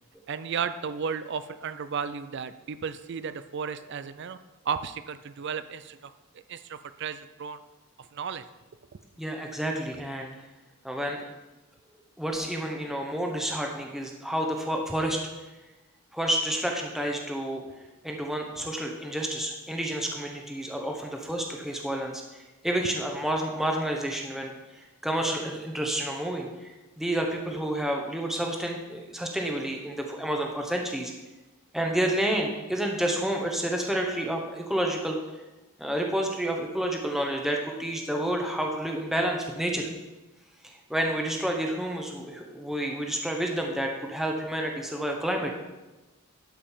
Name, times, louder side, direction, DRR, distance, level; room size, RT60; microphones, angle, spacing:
voice 1, 0.3-4.4 4.7-6.0 6.5-7.6 8.0-8.4, right 6 dB, 55° right, 12 dB, 0.4 m, -34 dB
voice 2, 9.2-10.3 10.8-11.2 12.2-15.2 16.1-17.6 18.0-22.2 22.6-24.5 25.0-26.5 27.0-31.1 31.7-35.2 35.8-39.9 40.6-45.5, right 1 dB, ahead, 1 dB, 0.9 m, -29 dB
11.5 x 5.2 x 5.6 m, 1.1 s
head